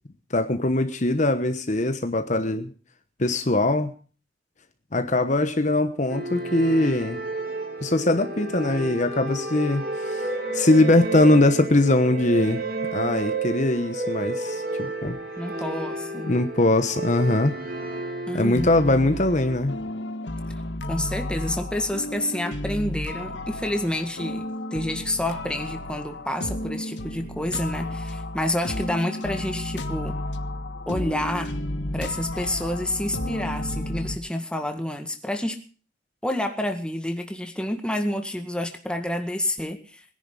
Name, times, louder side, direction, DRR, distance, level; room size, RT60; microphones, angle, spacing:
voice 1, 0.3-2.7 3.2-3.9 4.9-7.2 7.8-12.6 12.9-15.2 16.3-17.5 18.3-19.7, left 2 dB, 45° left, 8 dB, 1.2 m, -21 dB
sound 1, 6.1-19.6, right 3 dB, 55° right, 3.2 m, -31 dB
voice 2, 15.4-16.3 18.3-18.9 20.9-24.5 24.7-30.2 30.9-31.5 31.9-35.6 36.2-40.0, left 1 dB, 5° left, 5 dB, 1.9 m, -29 dB
sound 2, 18.5-34.2, left 1 dB, 90° left, 1.6 m, -32 dB
21.0 x 10.5 x 5.4 m, 0.40 s
head